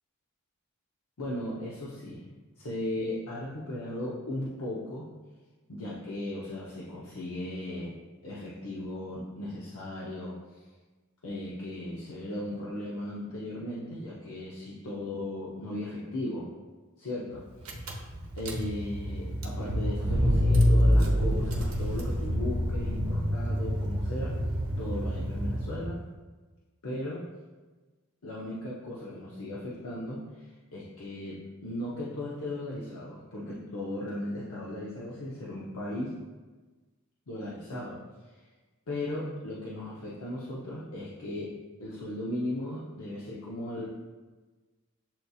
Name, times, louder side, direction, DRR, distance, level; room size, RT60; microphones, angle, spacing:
voice 1, 1.2-5.1 5.7-8.0 8.2-10.6 11.2-16.5 17.0-17.8 18.3-24.4 24.8-26.0 26.8-27.2 28.2-36.2 37.3-38.0 38.9-43.9, left 1 dB, 90° left, -6 dB, 0.7 m, -37 dB
Car / Engine, 17.3-17.4 17.6-26.0, equal, 70° right, 0.7 m, -27 dB
7.5 x 2.6 x 2.3 m, 1.3 s
head